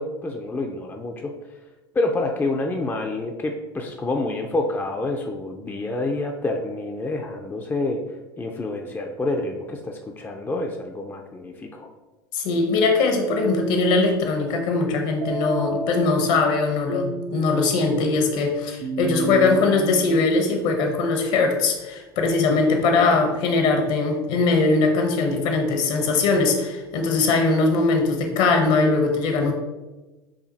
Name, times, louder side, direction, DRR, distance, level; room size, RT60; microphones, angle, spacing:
voice 1, 0.0-1.3 1.9-8.0 8.4-11.9 22.7-23.2, left 2 dB, 15° left, 3 dB, 0.5 m, -28 dB
voice 2, 12.3-29.5, left 3 dB, 60° left, 4 dB, 1.0 m, -21 dB
sound 1, 13.3-14.1 15.2-20.3, right 2 dB, 60° right, 0.6 m, -31 dB
4.9 x 2.6 x 4.1 m, 1.1 s
hypercardioid pair, 75°, 13 cm